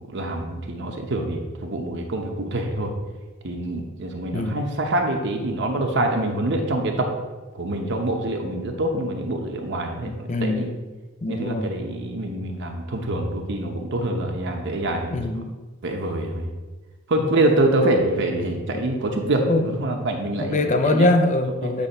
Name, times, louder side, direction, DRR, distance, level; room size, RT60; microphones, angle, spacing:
voice 1, 0.0-2.9 3.4-7.1 7.5-10.7 11.3-15.2 15.8-16.5 17.1-21.1, right 1 dB, 60° right, 2 dB, 0.9 m, -25 dB
voice 2, 4.3-4.7 10.1-10.8 11.2-11.7 15.1-15.6 17.2-17.3 19.5-19.6 20.4-21.9, left 2 dB, 35° left, 7 dB, 0.5 m, -23 dB
8.3 x 3.3 x 5.4 m, 1.2 s
head